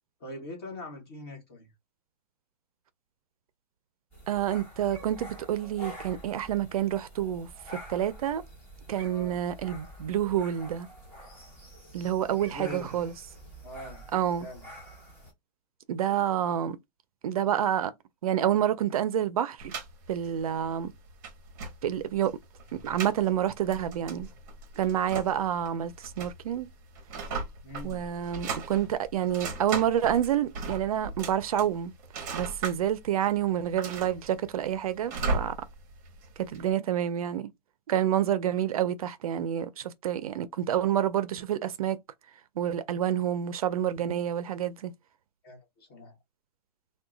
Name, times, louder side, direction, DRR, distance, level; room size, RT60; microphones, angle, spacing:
voice 1, 0.2-1.7 9.1-9.4 12.3-13.0 13.6-14.1 14.4-14.6 27.6-28.0 45.4-46.2, left 1 dB, 35° left, 1.4 m, -42 dB
sound 1, 4.1-15.3, right 1 dB, 10° left, 0.6 m, -47 dB
voice 2, 4.3-8.4 8.9-10.9 11.9-13.1 14.1-14.5 15.9-16.8 17.2-17.9 18.2-19.8 20.1-20.9 21.8-22.4 22.7-24.3 24.8-26.7 27.8-31.9 32.3-35.5 36.5-37.5 37.9-42.0 42.6-44.9, right 10 dB, 60° right, 0.4 m, -28 dB
creaky wooden door and handle w clock-loud, 19.6-36.7, right 4 dB, 30° right, 0.7 m, -38 dB
2.8 x 2.2 x 3.7 m
hypercardioid pair, 175°, 21 cm